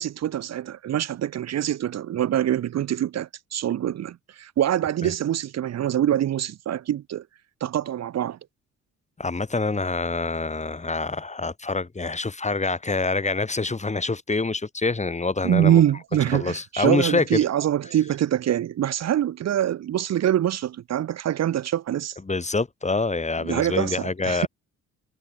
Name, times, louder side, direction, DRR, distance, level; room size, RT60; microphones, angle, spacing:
voice 1, 0.0-7.2 7.6-8.4 15.4-22.2 23.4-24.5, right 11 dB, 60° right, 1.1 m, -24 dB
voice 2, 9.2-15.8 16.3-17.4 22.3-24.5, left 3 dB, 25° left, 5.1 m, -26 dB
cardioid pair, 90°, 30 cm